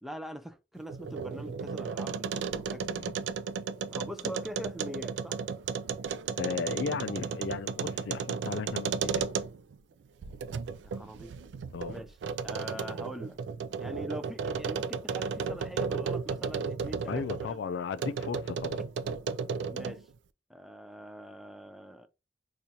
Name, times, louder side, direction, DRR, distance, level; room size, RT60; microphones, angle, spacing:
voice 1, 0.0-2.9 3.9-5.4 10.8-11.3 11.9-12.1 12.4-13.4 13.8-17.6 19.7-20.0 20.5-22.1, equal, ahead, 0.3 m, -43 dB
sound 1, 0.8-9.8 10.2-17.5 18.0-20.1, right 5 dB, 85° right, 0.3 m, -34 dB
voice 2, 2.8-3.1 6.4-9.3 11.7-12.0 17.1-18.8, left 6 dB, 85° left, 0.3 m, -35 dB
4.3 x 2.4 x 2.7 m
head